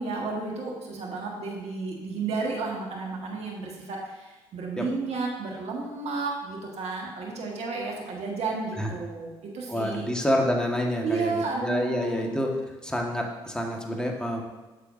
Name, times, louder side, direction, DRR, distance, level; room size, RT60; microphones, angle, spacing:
voice 1, 0.0-10.1 11.0-12.3, right 4 dB, 65° right, -1 dB, 1.7 m, -32 dB
voice 2, 9.7-12.5 12.8-14.4, equal, 5° left, 0 dB, 1.6 m, -28 dB
8.8 x 6.7 x 2.7 m, 1.1 s
hypercardioid pair, 50°, 11 cm